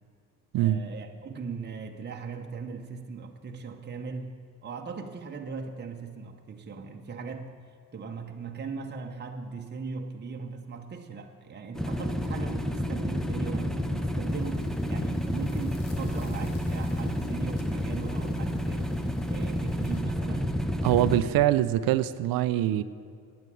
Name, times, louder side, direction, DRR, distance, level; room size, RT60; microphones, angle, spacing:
voice 1, 0.6-7.5 7.9-18.9 19.3-20.6, right 5 dB, 30° right, 2 dB, 0.9 m, -39 dB
sound 1, 11.8-21.2, equal, ahead, 0.7 m, -30 dB
sound 2, 14.3-20.0, left 4 dB, 70° left, 1.4 m, -50 dB
voice 2, 20.8-22.8, right 13 dB, 85° right, 13 dB, 0.5 m, -23 dB
9.5 x 9.3 x 8.3 m, 2.3 s
cardioid pair, 95°, 34 cm